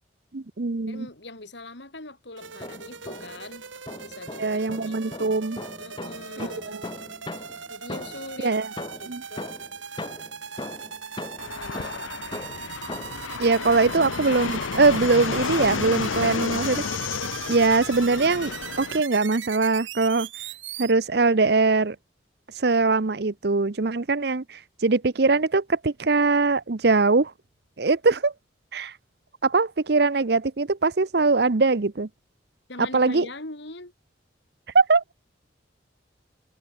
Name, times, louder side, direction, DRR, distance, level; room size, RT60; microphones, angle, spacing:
voice 1, 0.3-1.1 4.4-5.6 6.4-6.9 8.4-8.7 9.1-9.2 13.4-16.8 17.5-20.3 20.8-22.0 22.6-27.3 27.8-28.3 28.7-28.9 29.4-32.1 32.8-33.3 34.7-35.0, right 3 dB, 55° right, 0.7 m, -22 dB
voice 2, 0.9-3.7 4.0-5.3 5.8-6.9 7.7-9.5 11.4-12.1 13.8-13.9 32.7-33.9, left 2 dB, 65° left, 3.5 m, -42 dB
sound 1, 2.4-3.5 3.9-8.4 8.8-13.3, left 2 dB, 25° left, 0.9 m, -39 dB
sound 2, 2.4-20.9, right 7 dB, 80° right, 2.5 m, -39 dB
Fixed-wing aircraft airplane, 11.4-19.0, left 6 dB, 90° left, 0.7 m, -31 dB
head